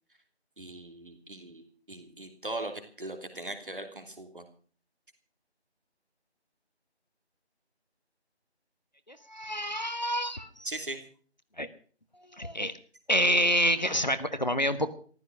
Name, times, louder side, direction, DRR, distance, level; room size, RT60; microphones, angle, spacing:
voice 1, 0.6-4.4 10.6-11.0, right 2 dB, 50° right, 6 dB, 3.1 m, -39 dB
voice 2, 9.1-10.5 11.6-11.7 12.3-12.7 13.1-14.9, equal, 40° left, 12 dB, 1.1 m, -27 dB
14.5 x 13.0 x 6.2 m, 0.43 s
figure-of-eight pair, 170°, 34 cm